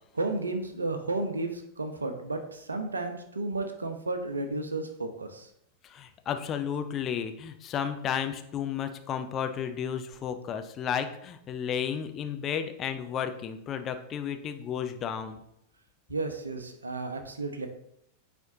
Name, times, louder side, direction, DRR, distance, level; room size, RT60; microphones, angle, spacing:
voice 1, 0.1-5.5 16.1-17.7, right 2 dB, 75° right, 7 dB, 0.8 m, -33 dB
voice 2, 5.8-15.4, left 8 dB, 30° left, 7 dB, 0.6 m, -33 dB
9.3 x 4.3 x 2.8 m, 0.75 s
figure-of-eight pair, 90°, 0 cm